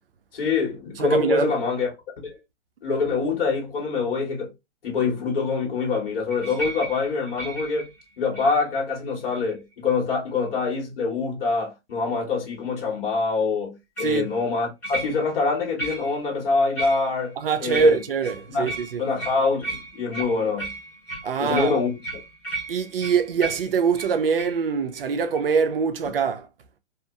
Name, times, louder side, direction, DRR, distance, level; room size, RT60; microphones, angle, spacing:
voice 1, 0.3-1.9 2.2-2.4 2.8-4.5 4.8-7.9 8.2-18.0 18.5-18.7 19.0-20.7 21.4-21.9, left 4 dB, 50° left, 1.3 m, -25 dB
voice 2, 1.0-1.5 14.0-14.3 17.4-19.0 21.2-21.7 22.7-26.5, right 6 dB, 55° right, 0.5 m, -24 dB
sound 1, 6.3-8.8 9.3-9.7 14.0-14.2 14.8-15.4 15.8-16.3 16.8-17.3 17.7-24.6 24.9-25.1 25.3-25.5, right 2 dB, 5° left, 0.6 m, -35 dB
2.9 x 2.4 x 2.4 m
hypercardioid pair, 160°, 35 cm